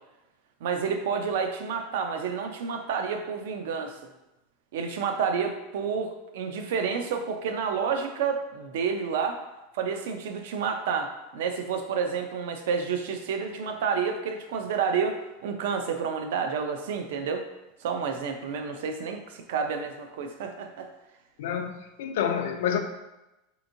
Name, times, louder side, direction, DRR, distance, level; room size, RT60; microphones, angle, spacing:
voice 1, 0.6-4.0 4.7-9.4 9.7-17.4 17.8-20.9, right 6 dB, 75° right, 5 dB, 0.4 m, -29 dB
voice 2, 21.4-22.8, left 8 dB, 80° left, 6 dB, 0.4 m, -28 dB
3.5 x 2.9 x 2.6 m, 0.96 s
supercardioid pair, 160°, 0 cm